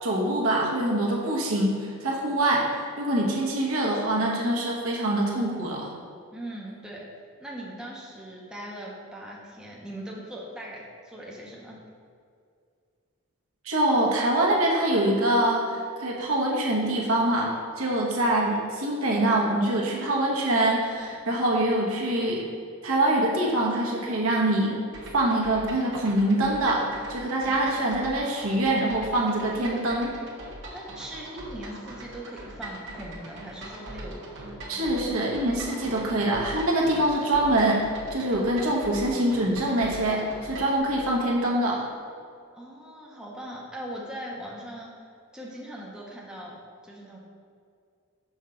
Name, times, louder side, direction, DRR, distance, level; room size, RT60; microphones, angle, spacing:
voice 1, 0.0-5.9 13.6-17.5 17.8-22.4 22.8-24.8 25.1-30.1 34.7-37.8 38.1-41.8, right 1 dB, 75° right, -2 dB, 1.2 m, -24 dB
voice 2, 6.3-7.1 7.4-11.8 17.8-18.0 30.7-34.9 35.9-36.1 42.5-46.6 46.8-47.2, right 1 dB, 5° right, -4 dB, 0.7 m, -40 dB
sound 1, 24.9-40.8, right 1 dB, 55° right, 1.0 m, -41 dB
5.8 x 5.5 x 3.8 m, 2.3 s
head